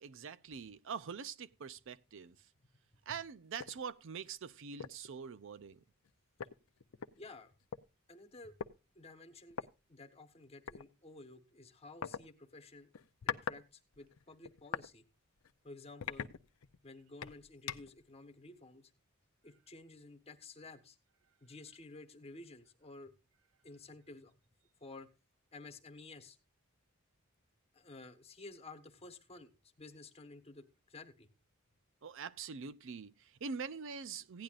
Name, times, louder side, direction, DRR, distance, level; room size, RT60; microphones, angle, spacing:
voice 1, 0.0-2.5 3.1-5.8 32.0-34.4, right 6 dB, 60° right, 0.5 m, -44 dB
sound 1, 3.6-3.8 4.2-4.4 4.8-5.1 6.0-6.1 6.4-7.8 8.6-8.7 9.5-9.7 10.7-10.8 12.0-12.2 12.9-13.6 13.9-14.9 15.4-15.5 16.0-16.8 17.2-18.0, left 7 dB, 80° left, 0.6 m, -42 dB
voice 2, 7.2-7.5 8.1-8.5 8.9-12.9 13.2-15.0 15.6-16.3 16.8-18.9 19.4-21.0 21.4-23.1 23.6-24.3 24.8-25.1 25.5-26.4 27.7-29.5 29.8-31.3, left 3 dB, 30° left, 1.1 m, -53 dB
16.0 x 10.5 x 2.5 m
head